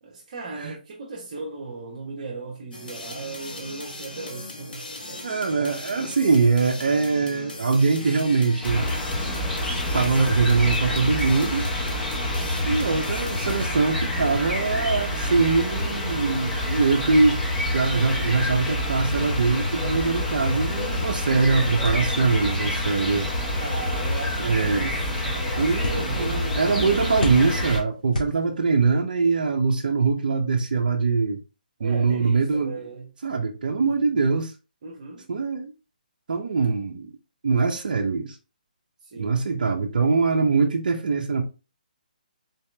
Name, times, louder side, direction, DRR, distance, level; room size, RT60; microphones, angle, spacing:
voice 1, 0.0-5.3 23.5-27.0 31.8-33.1 34.8-35.3 39.0-39.3, right 3 dB, 50° right, 0.9 m, -36 dB
sound 1, 2.7-13.7, left 2 dB, 80° left, 1.3 m, -38 dB
voice 2, 5.2-8.9 9.9-11.7 12.7-17.4 17.7-23.3 24.4-24.9 25.6-31.4 31.8-32.8 33.2-34.5 35.3-35.7 36.3-37.1 37.4-38.4 39.2-41.4, right 4 dB, 65° right, 0.6 m, -23 dB
sound 2, 8.6-27.8, left 1 dB, 15° left, 1.5 m, -27 dB
sound 3, 28.9-29.0, left 1 dB, 55° left, 1.6 m, -37 dB
4.0 x 2.8 x 3.3 m
hypercardioid pair, 155°, 5 cm